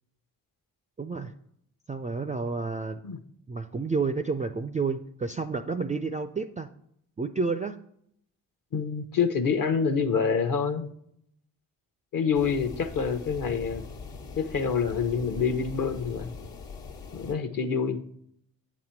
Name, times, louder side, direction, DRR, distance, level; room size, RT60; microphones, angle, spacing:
voice 1, 1.0-1.3 1.9-3.0 3.5-6.7 7.2-7.8, right 4 dB, 20° right, 10 dB, 0.3 m, -30 dB
voice 2, 8.7-10.9 12.1-13.8 14.4-16.3 17.1-18.0, left 6 dB, 45° left, 9 dB, 0.9 m, -27 dB
sound 1, 12.3-17.3, left 4 dB, 65° left, 1.3 m, -42 dB
8.4 x 4.2 x 4.5 m, 0.70 s
hypercardioid pair, 40°, 45 cm